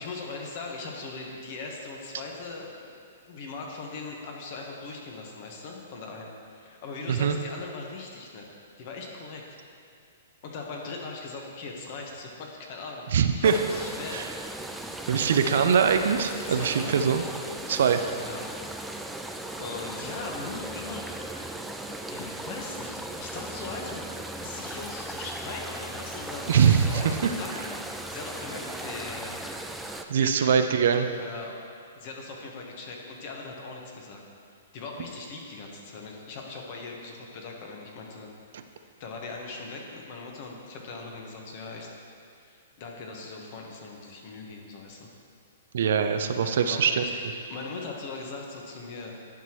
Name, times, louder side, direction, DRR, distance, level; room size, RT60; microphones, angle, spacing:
voice 1, 0.0-2.9 3.3-8.5 8.8-9.4 10.4-14.2 15.3-16.1 16.5-17.1 18.2-18.4 19.6-21.0 21.3-21.6 22.1-24.1 24.4-29.3 30.1-30.6 31.2-31.6 31.9-34.2 34.7-38.3 38.8-41.9 42.4-45.1 46.4-49.1, left 3 dB, 50° left, 0 dB, 1.3 m, -40 dB
voice 2, 13.1-13.6 14.1-14.3 15.1-17.2 17.7-18.0 26.5-27.3 30.1-31.1 38.5-38.6 45.7-47.0, right 7 dB, 70° right, 8 dB, 0.5 m, -22 dB
sound 1, 13.4-30.0, right 1 dB, 5° right, 0.4 m, -37 dB
11.0 x 6.0 x 3.1 m, 2.4 s
hypercardioid pair, 130°, 0 cm